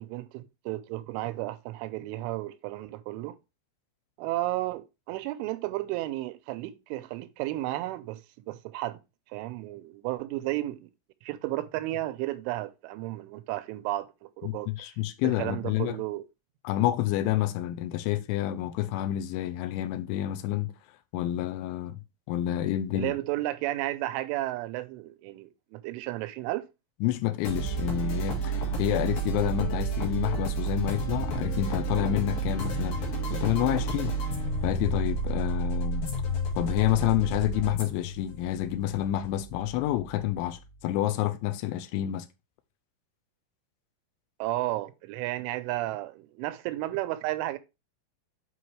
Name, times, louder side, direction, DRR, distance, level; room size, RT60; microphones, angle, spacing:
voice 1, 0.0-3.4 4.2-9.0 9.3-10.9 11.2-14.7 15.2-16.2 22.9-26.7 44.4-47.6, right 17 dB, 90° right, 3.1 m, -33 dB
voice 2, 14.4-16.0 16.6-20.7 21.1-22.0 22.3-23.1 27.0-33.0 33.3-34.2 34.6-36.0 36.6-42.3, left 13 dB, 85° left, 3.0 m, -28 dB
sound 1, 27.4-40.8, right 3 dB, 60° left, 3.3 m, -31 dB
7.8 x 5.2 x 3.2 m
omnidirectional pair, 5.4 m